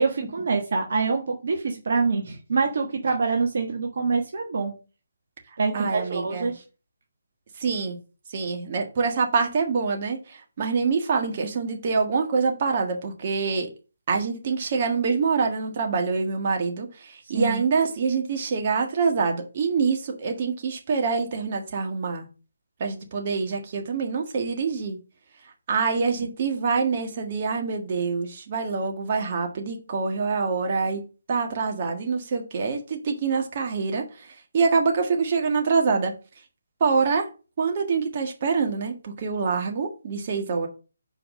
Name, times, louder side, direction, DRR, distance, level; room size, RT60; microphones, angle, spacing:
voice 1, 0.0-4.7 5.6-6.6 17.3-17.6, right 4 dB, 55° right, 2 dB, 1.3 m, -25 dB
voice 2, 5.7-6.5 7.6-8.0 8.3-13.7 14.1-22.3 22.8-25.0 25.7-31.0 31.3-34.3 34.5-36.1 36.8-37.3 37.6-40.7, right 5 dB, 40° right, 3 dB, 1.7 m, -25 dB
5.0 x 4.8 x 6.3 m, 0.33 s
figure-of-eight pair, 150°, 0 cm